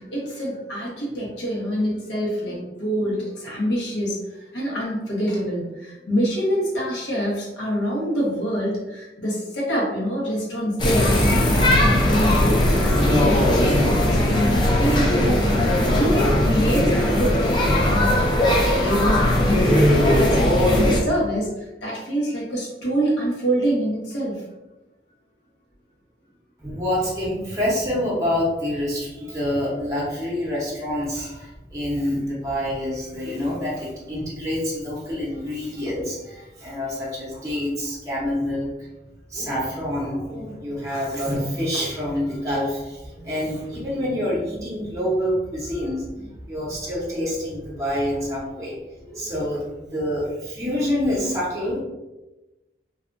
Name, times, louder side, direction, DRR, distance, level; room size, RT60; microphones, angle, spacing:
voice 1, 0.0-4.2 4.5-11.2 11.5-15.5 15.9-18.4 18.7-20.4 20.7-24.4, equal, 85° left, -5 dB, 1.0 m, -26 dB
sound 1, 10.8-21.0, left 1 dB, 25° left, 0.4 m, -19 dB
voice 2, 26.6-38.9 39.3-51.8, left 1 dB, 20° right, -6 dB, 0.7 m, -27 dB
2.6 x 2.3 x 2.4 m, 1.1 s
head